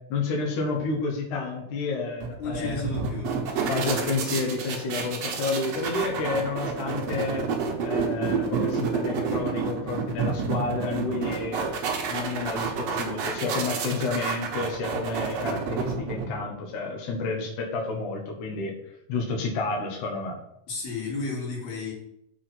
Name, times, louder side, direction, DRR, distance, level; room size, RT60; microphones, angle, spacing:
voice 1, 0.1-2.8 3.7-7.4 7.8-11.7 12.1-18.7 19.1-20.4, left 3 dB, 65° left, 0 dB, 2.6 m, -30 dB
sound 1, 2.2-16.6, right 5 dB, 60° right, 1.9 m, -29 dB
voice 2, 2.4-3.7 20.7-21.9, left 4 dB, 85° left, -3 dB, 4.8 m, -33 dB
7.2 x 4.9 x 6.0 m, 0.78 s
omnidirectional pair, 4.1 m